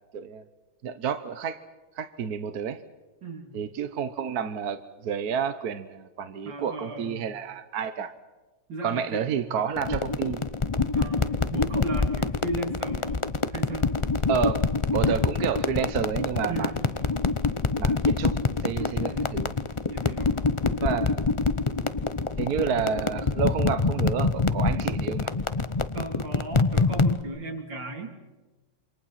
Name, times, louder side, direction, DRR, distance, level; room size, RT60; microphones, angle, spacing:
voice 1, 0.8-1.6 2.0-2.8 3.5-8.1 8.8-10.4 10.7-10.9 14.3-14.6 14.9-16.7 17.8-18.4 18.6-19.5 20.8-21.3 22.4-25.3, right 7 dB, 60° right, 10 dB, 1.4 m, -30 dB
voice 2, 3.2-3.6 6.5-7.3 8.7-9.5 10.9-13.2 13.5-13.9 16.5-17.0 18.8-19.5 19.9-20.4 25.9-28.3, right 2 dB, 80° right, 3 dB, 3.8 m, -36 dB
sound 1, 9.8-27.2, left 4 dB, 45° left, 0.4 m, -26 dB
28.0 x 25.5 x 5.8 m, 1.1 s
omnidirectional pair, 2.0 m